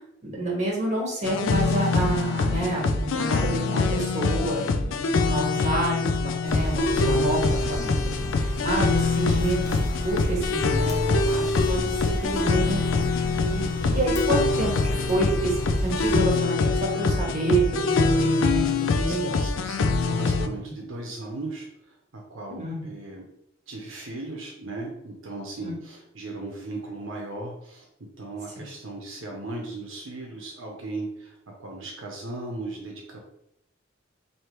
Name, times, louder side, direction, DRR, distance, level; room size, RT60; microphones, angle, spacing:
voice 1, 0.2-8.1 8.4-9.7 10.0-19.4 22.5-22.9 25.6-25.8, right 2 dB, 40° right, -3 dB, 1.4 m, -29 dB
sound 1, 1.2-20.5, left 3 dB, 75° left, 0.4 m, -24 dB
sound 2, 6.5-16.2, equal, 15° left, 0.8 m, -33 dB
voice 2, 19.0-23.2 23.7-27.9 28.2-33.2, right 2 dB, 75° right, 0 dB, 0.7 m, -37 dB
3.2 x 2.7 x 4.4 m, 0.79 s
head